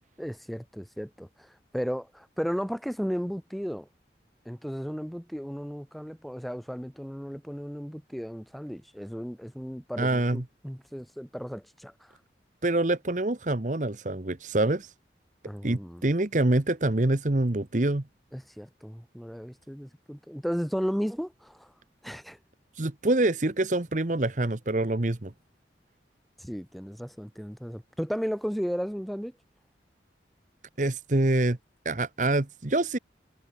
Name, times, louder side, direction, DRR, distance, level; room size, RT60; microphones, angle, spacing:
voice 1, 0.2-3.9 4.5-12.2 15.4-16.1 18.3-21.7 22.0-22.4 26.4-29.3, equal, ahead, 3.9 m, -34 dB
voice 2, 10.0-10.4 12.6-14.9 15.6-18.0 22.8-25.3 30.8-31.6 31.8-33.0, right 2 dB, 45° right, 1.1 m, -26 dB
head